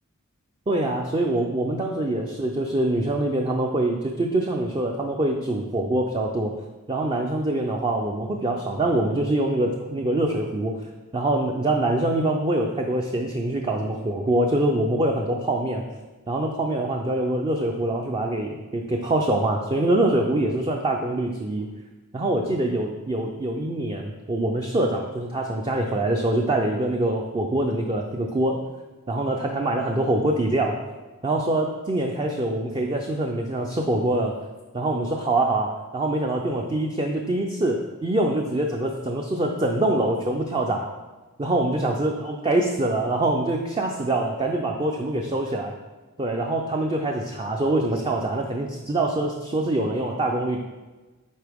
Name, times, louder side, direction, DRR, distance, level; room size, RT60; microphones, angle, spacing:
voice 1, 0.7-6.5 6.9-10.7 11.1-15.8 16.3-21.7 22.1-28.6 29.1-30.8 31.2-34.4 34.7-40.9 41.4-45.7 46.2-50.6, right 1 dB, 25° right, 1 dB, 0.4 m, -24 dB
9.5 x 3.7 x 3.5 m, 1.2 s
head